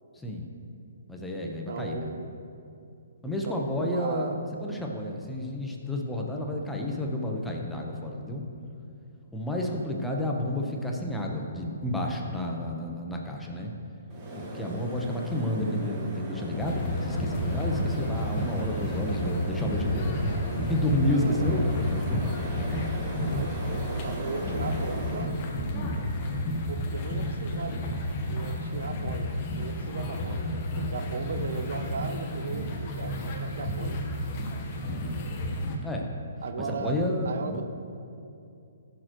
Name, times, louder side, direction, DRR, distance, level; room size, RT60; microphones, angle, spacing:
voice 1, 0.1-0.5 1.1-2.1 3.2-4.3 4.6-8.4 9.3-13.7 14.3-20.1 20.6-22.4 25.7-26.0 34.8-35.1 35.8-36.1 36.6-37.6, left 1 dB, 5° left, -1 dB, 1.0 m, -31 dB
voice 2, 1.4-2.3 3.2-4.4 21.1-21.8 23.2-25.3 26.7-27.8 28.3-30.5 30.8-34.0 36.4-37.0 37.2-37.6, right 5 dB, 65° right, 8 dB, 0.7 m, -37 dB
sound 1, 14.1-25.2, right 1 dB, 25° right, 1.7 m, -38 dB
sound 2, 16.6-35.8, left 1 dB, 35° left, 1.2 m, -31 dB
sound 3, 19.4-25.9, right 3 dB, 60° left, 0.9 m, -46 dB
15.0 x 6.7 x 3.1 m, 2.6 s
hypercardioid pair, 145°, 0 cm